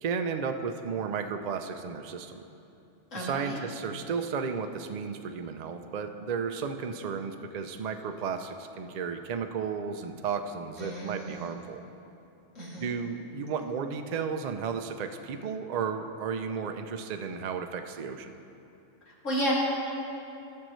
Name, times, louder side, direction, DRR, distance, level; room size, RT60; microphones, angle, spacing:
voice 1, 0.0-2.4 3.2-11.8 12.8-18.3, right 6 dB, 55° right, 7 dB, 0.4 m, -33 dB
voice 2, 3.1-3.6 10.8-11.5 12.5-12.9 19.2-19.5, equal, 80° left, -8 dB, 2.9 m, -32 dB
17.5 x 6.5 x 3.1 m, 2.8 s
omnidirectional pair, 1.3 m